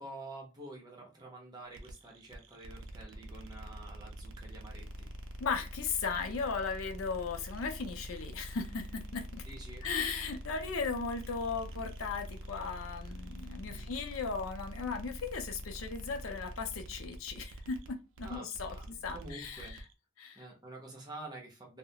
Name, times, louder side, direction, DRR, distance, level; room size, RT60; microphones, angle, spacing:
voice 1, 0.0-5.1 9.5-9.9 13.6-13.9 18.2-19.8 20.3-21.8, right 2 dB, 20° right, 0.7 m, -48 dB
sound 1, 1.7-19.9, equal, 65° right, 0.4 m, -45 dB
voice 2, 5.4-9.5 9.8-19.8 20.2-20.4, left 5 dB, 80° left, 0.5 m, -37 dB
2.3 x 2.0 x 2.8 m
head